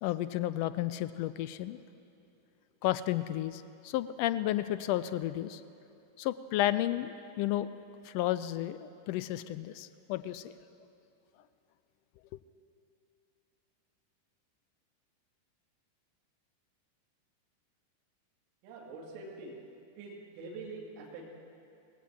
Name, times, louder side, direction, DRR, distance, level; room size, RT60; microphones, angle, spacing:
voice 1, 0.0-1.8 2.8-5.6 6.2-7.7 8.0-10.5, left 14 dB, 45° left, 14 dB, 0.4 m, -32 dB
voice 2, 18.6-19.6 20.0-21.3, right 3 dB, 45° right, -2 dB, 2.7 m, -45 dB
19.0 x 16.0 x 3.0 m, 2.7 s
figure-of-eight pair, 90°, 0 cm